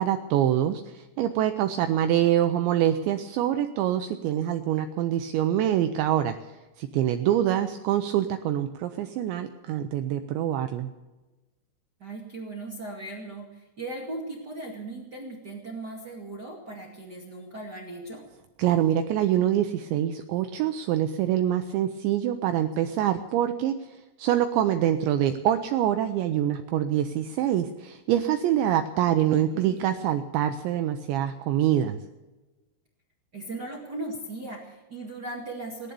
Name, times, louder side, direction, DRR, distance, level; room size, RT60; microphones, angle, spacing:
voice 1, 0.0-6.4 6.8-10.9 18.6-23.7 24.2-32.0, right 11 dB, 80° right, 7 dB, 2.6 m, -25 dB
voice 2, 12.0-18.2 29.1-29.9 33.3-35.9, right 2 dB, 60° right, -2 dB, 1.0 m, -38 dB
18.5 x 11.5 x 6.9 m, 1.1 s
omnidirectional pair, 5.9 m